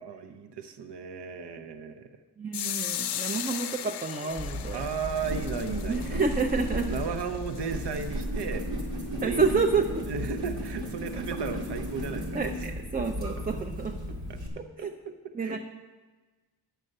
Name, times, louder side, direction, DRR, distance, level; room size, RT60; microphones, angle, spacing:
voice 1, 0.0-2.1 4.7-6.2 6.9-8.6 9.1-9.6 10.1-12.5 14.3-14.4 14.8-14.9 15.4-15.6, right 5 dB, 75° right, 8 dB, 0.7 m, -35 dB
voice 2, 2.4-4.8 5.9-6.9 9.2-10.0 12.3-14.0 14.6-14.9 15.3-15.6, right 4 dB, 20° right, 4 dB, 0.4 m, -29 dB
sound 1, 2.5-8.2, left 10 dB, 70° left, 0.5 m, -37 dB
sound 2, 4.3-14.5, equal, 90° right, 1.9 m, -34 dB
9.1 x 6.6 x 6.4 m, 1.3 s
wide cardioid pair, 145°, 41 cm